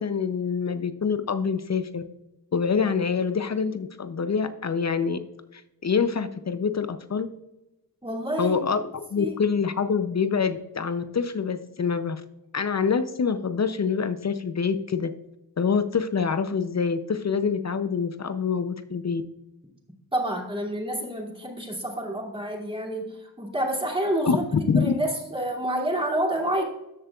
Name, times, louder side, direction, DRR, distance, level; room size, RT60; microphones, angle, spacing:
voice 1, 0.0-2.0 2.5-5.2 5.5-7.3 8.4-8.8 9.1-12.2 12.5-15.1 15.6-19.2 24.2-24.9, left 6 dB, 40° left, 10 dB, 0.6 m, -25 dB
voice 2, 8.0-8.7 9.2-9.4 20.1-24.4 24.8-26.6, right 1 dB, 15° right, -1 dB, 2.6 m, -28 dB
13.0 x 7.3 x 2.4 m, 0.94 s
cardioid pair, 70°, 41 cm